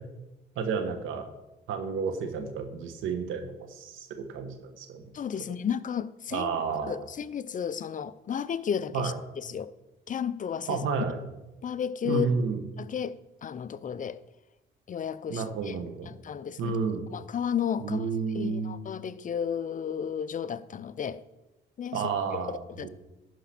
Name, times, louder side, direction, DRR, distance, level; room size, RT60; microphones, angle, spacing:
voice 1, 0.5-1.3 1.7-5.1 6.3-7.0 8.9-9.2 10.7-11.2 12.0-12.6 15.3-16.1 16.6-17.0 17.8-18.7 21.9-22.9, right 5 dB, 90° right, 1.3 m, -31 dB
voice 2, 5.1-6.5 6.9-9.7 10.1-10.9 11.6-12.3 12.8-13.1 13.4-14.2 14.9-15.8 16.1-16.8 17.1-18.1 18.3-21.2 21.8-22.0 22.3-22.9, left 8 dB, 40° left, 0.5 m, -33 dB
11.5 x 5.0 x 5.9 m
cardioid pair, 90°, 20 cm